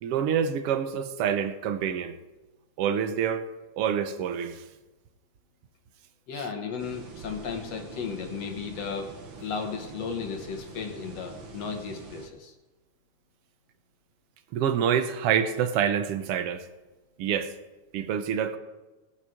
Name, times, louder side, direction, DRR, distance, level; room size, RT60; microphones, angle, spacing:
voice 1, 0.0-2.2 2.8-3.5 3.8-4.6 14.5-16.7 17.2-17.5 17.9-18.6, right 8 dB, 65° right, 9 dB, 1.6 m, -27 dB
voice 2, 6.3-9.1 9.4-12.5, left 6 dB, 60° left, 4 dB, 2.2 m, -35 dB
sound 1, 6.8-12.3, right 4 dB, 45° right, 1.9 m, -44 dB
19.5 x 7.4 x 5.1 m, 1.1 s
omnidirectional pair, 3.5 m